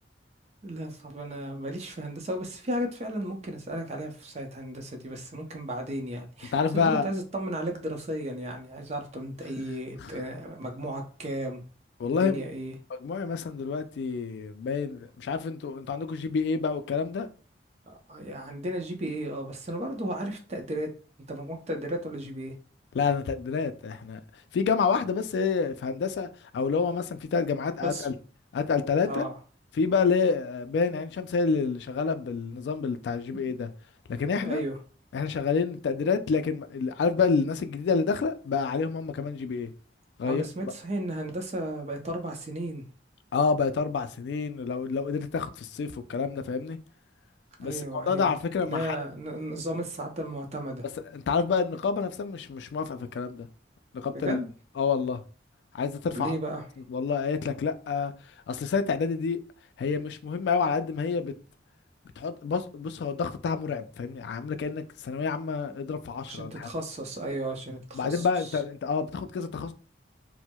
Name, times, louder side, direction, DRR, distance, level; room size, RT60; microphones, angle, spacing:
voice 1, 0.6-11.6 12.0-12.7 17.9-20.9 21.3-22.5 27.8-28.1 29.0-29.3 34.4-34.8 40.3-42.8 47.6-48.3 48.6-50.8 54.1-54.5 56.1-56.6 66.2-68.3, right 1 dB, 40° right, 0.6 m, -34 dB
voice 2, 6.5-7.1 10.0-10.1 12.0-12.4 12.9-17.3 22.9-24.2 24.5-28.1 28.5-29.3 29.7-33.7 34.1-34.6 35.1-39.7 40.2-40.4 43.3-46.8 47.6-49.0 51.1-53.5 53.9-54.4 54.8-55.2 55.7-56.4 56.9-58.1 58.5-59.4 59.8-61.3 62.2-66.7 67.9-69.7, left 5 dB, 75° left, 0.3 m, -28 dB
4.3 x 2.0 x 2.2 m
head